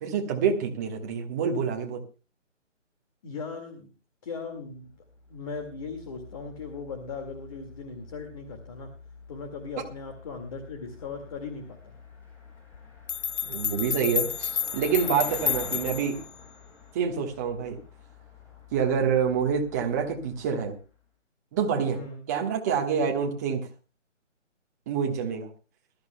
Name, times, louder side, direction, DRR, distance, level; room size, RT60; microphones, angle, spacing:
voice 1, 0.0-2.0 13.4-16.2 16.9-17.8 18.7-20.7 21.5-22.0 22.3-23.7 24.9-25.5, right 6 dB, 15° right, 2 dB, 1.3 m, -27 dB
voice 2, 3.2-3.9 4.2-4.9 5.3-8.9 9.3-11.9 21.9-22.2, left 4 dB, 25° left, 5 dB, 2.0 m, -38 dB
Car passing by, 5.1-20.8, left 3 dB, 5° left, 7.4 m, -48 dB
sound 1, 12.7-12.8 13.1-16.2, left 8 dB, 65° left, 0.7 m, -30 dB
21.5 x 13.5 x 2.2 m, 0.33 s
hypercardioid pair, 160°, 38 cm